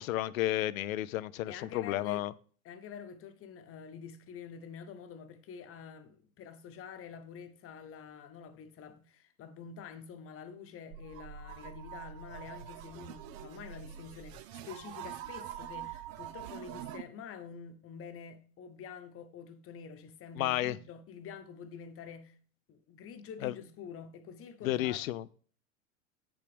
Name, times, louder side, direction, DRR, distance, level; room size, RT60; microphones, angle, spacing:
voice 1, 0.0-2.3 20.4-20.8 23.4-23.5 24.6-25.2, left 14 dB, 70° left, 0.6 m, -32 dB
voice 2, 1.5-2.2 2.6-22.4 22.7-25.3, left 6 dB, 30° left, 1.1 m, -47 dB
sound 1, 10.9-17.0, right 10 dB, 50° right, 0.7 m, -45 dB
8.4 x 7.0 x 3.4 m
hypercardioid pair, 95°, 43 cm